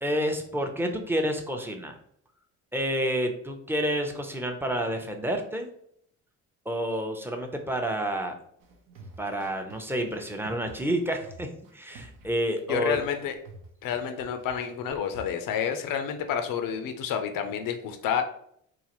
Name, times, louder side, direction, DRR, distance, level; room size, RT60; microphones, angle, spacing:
voice 1, 0.0-2.0 2.7-5.7 6.7-8.4 9.2-11.5 11.7-13.0, equal, 5° right, 3 dB, 0.6 m, -29 dB
sound 1, 8.6-15.3, right 3 dB, 75° right, 0.8 m, -49 dB
voice 2, 12.7-13.3 13.8-18.2, left 8 dB, 75° left, 7 dB, 0.6 m, -29 dB
3.8 x 2.5 x 2.9 m, 0.68 s
cardioid pair, 80°, 34 cm